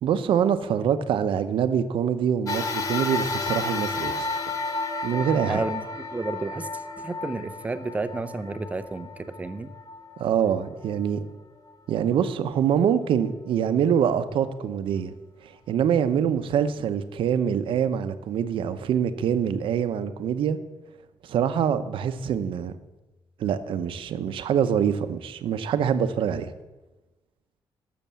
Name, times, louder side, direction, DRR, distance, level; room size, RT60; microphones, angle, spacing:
voice 1, 0.0-4.5 5.0-5.6 10.2-11.2 11.9-15.1 15.4-20.6 21.2-22.8 23.4-26.5, right 8 dB, 75° right, 11 dB, 0.8 m, -25 dB
sound 1, 2.5-11.1 11.7-11.8 12.9-13.0, left 3 dB, 40° left, 1.1 m, -32 dB
voice 2, 5.5-5.8 6.1-6.7 7.0-9.7, right 3 dB, 15° right, 11 dB, 0.6 m, -31 dB
12.5 x 6.8 x 7.4 m, 1.1 s
wide cardioid pair, 170°, 9 cm